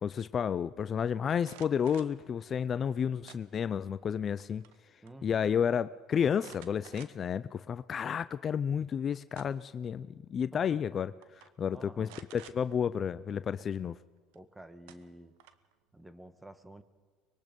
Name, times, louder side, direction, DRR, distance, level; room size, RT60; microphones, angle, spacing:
voice 1, 0.0-4.6 5.2-13.9, left 7 dB, 40° left, 14 dB, 0.5 m, -31 dB
sound 1, 1.3-2.2 3.3-3.9 4.3-4.8 5.1-5.2 6.4-7.4 7.9-8.0 9.0-9.8 10.8-10.9 11.2-11.5 12.0-12.6 14.3-14.4 14.9-15.7, right 11 dB, 85° right, 1.1 m, -53 dB
voice 2, 5.0-5.5 10.5-10.8 11.7-12.1 14.3-15.3 15.9-16.8, right 1 dB, 10° right, 12 dB, 1.4 m, -50 dB
24.5 x 21.5 x 5.3 m, 1.5 s
supercardioid pair, 100°, 0 cm